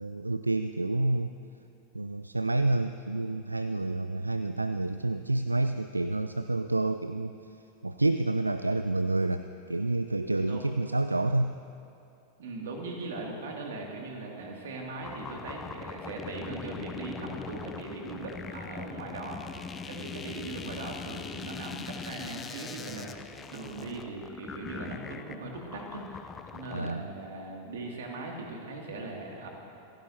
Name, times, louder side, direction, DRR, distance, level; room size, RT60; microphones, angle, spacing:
voice 1, 0.0-1.3 1.9-7.3 7.8-11.5 26.7-27.1, right 2 dB, 85° right, 10 dB, 0.4 m, -29 dB
voice 2, 10.4-10.7 12.4-19.4 19.8-29.5, right 3 dB, 60° right, 0 dB, 2.6 m, -39 dB
sound 1, 15.0-26.9, left 5 dB, 20° left, 0.6 m, -41 dB
27.5 x 15.5 x 2.9 m, 2.7 s
figure-of-eight pair, 90°, 0 cm